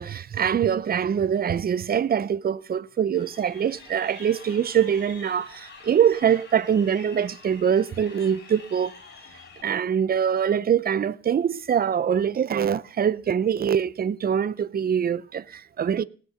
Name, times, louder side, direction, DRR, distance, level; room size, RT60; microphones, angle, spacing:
voice 1, 0.0-8.9 9.6-16.0, right 8 dB, 30° right, 0.5 m, -24 dB
Crowd, 3.1-9.6, left 4 dB, 35° left, 3.7 m, -47 dB
18.5 x 6.6 x 5.6 m
cardioid pair, 90°, 30 cm